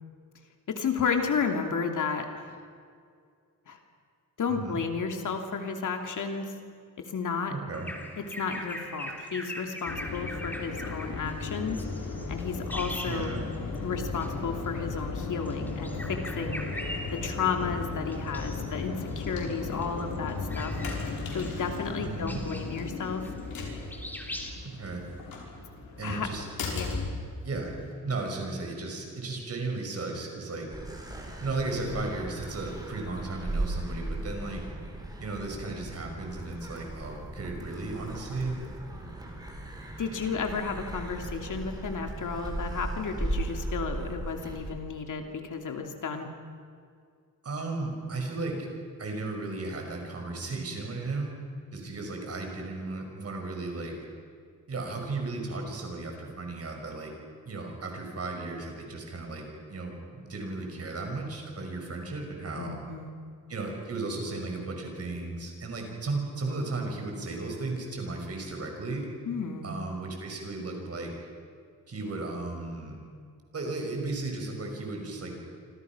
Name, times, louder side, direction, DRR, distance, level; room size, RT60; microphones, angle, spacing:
voice 1, 0.7-2.5 3.7-3.8 4.4-6.5 7.0-7.5 8.2-11.8 12.3-13.3 13.8-16.6 17.1-20.8 21.3-23.3 26.0-26.3 26.7-27.0 40.0-46.3 62.6-63.1 69.3-69.7, left 5 dB, 60° left, 4 dB, 2.7 m, -32 dB
voice 2, 7.5-7.9 13.1-13.4 22.0-22.4 24.6-25.0 26.0-26.5 27.4-27.7 28.0-30.7 31.4-34.6 35.2-38.5 47.4-48.7 49.0-51.3 51.7-54.0 54.7-57.1 57.4-62.8 63.5-69.1 69.6-71.1 71.9-73.0 73.5-75.4, right 3 dB, 45° right, 2 dB, 5.7 m, -35 dB
Bird vocalization bird call bird song, 7.7-13.8 14.1-14.3 15.4-17.6 18.1-18.8 19.1-23.6 23.9-24.5, left 1 dB, 5° left, 3.0 m, -41 dB
sound 1, 9.8-27.9, left 3 dB, 90° left, 5.9 m, -36 dB
sound 2, 30.7-44.7, right 2 dB, 10° right, 3.8 m, -37 dB
28.5 x 25.5 x 6.1 m, 2.2 s
wide cardioid pair, 160°, 34 cm